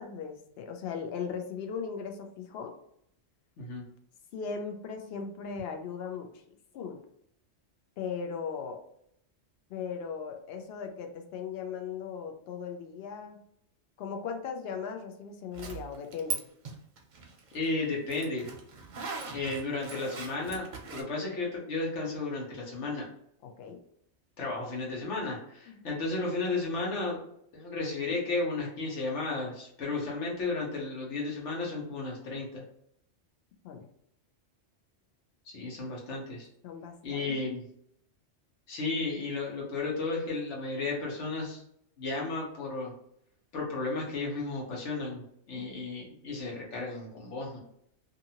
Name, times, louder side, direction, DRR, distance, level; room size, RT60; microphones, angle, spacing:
voice 1, 0.0-2.7 4.3-6.4 6.7-7.0 8.0-8.8 9.7-13.4 14.0-16.4 23.4-23.8 25.7-25.9 33.6-33.9 36.6-37.4 45.6-45.9, left 6 dB, 65° left, 4 dB, 0.8 m, -38 dB
Zipper (clothing), 15.5-16.4 16.7-21.0, right 4 dB, 50° right, 0.6 m, -39 dB
voice 2, 17.5-18.4 19.3-20.7 20.9-23.1 24.4-27.2 27.5-32.6 35.5-36.5 37.0-37.6 38.7-41.6 42.0-42.9 43.5-47.6, left 3 dB, 85° left, -3 dB, 1.3 m, -33 dB
2.6 x 2.5 x 2.8 m, 0.71 s
omnidirectional pair, 1.2 m